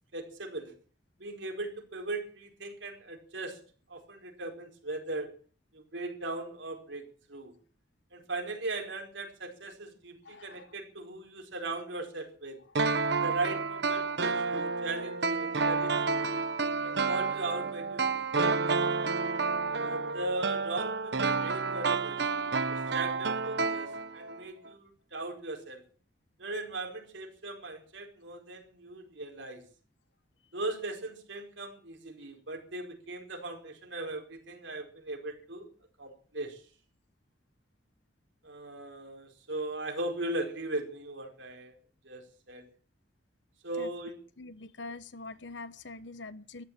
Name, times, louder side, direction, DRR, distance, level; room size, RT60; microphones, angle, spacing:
voice 1, 0.1-0.7 1.2-3.6 3.9-5.3 5.7-7.5 8.1-12.6 13.2-16.3 16.8-18.5 19.7-25.8 26.4-29.6 30.5-35.7 36.0-36.6 38.4-41.7 42.0-42.2 42.5-42.6 43.6-44.2, right 2 dB, 85° right, 4.7 m, -38 dB
voice 2, 10.2-10.8 43.8-43.9 44.4-46.6, left 3 dB, 75° left, 1.1 m, -44 dB
sound 1, 12.7-24.4 24.7-24.8, right 4 dB, 65° right, 1.1 m, -30 dB
14.0 x 11.5 x 8.8 m
head